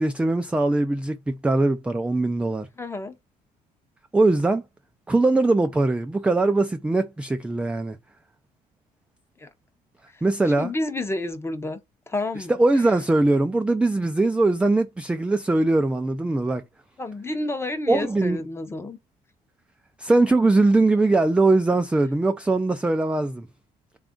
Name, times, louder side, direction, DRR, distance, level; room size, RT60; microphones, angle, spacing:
voice 1, 0.0-2.7 4.1-4.6 5.1-8.0 10.2-10.7 12.4-16.6 17.9-18.4 20.0-23.5, right 2 dB, 5° right, 0.3 m, -21 dB
voice 2, 2.8-3.2 9.4-9.5 10.1-10.2 10.6-11.8 12.1-12.5 17.0-19.0, left 2 dB, 15° left, 0.7 m, -30 dB
3.4 x 2.4 x 3.7 m
cardioid pair, 110°, 17 cm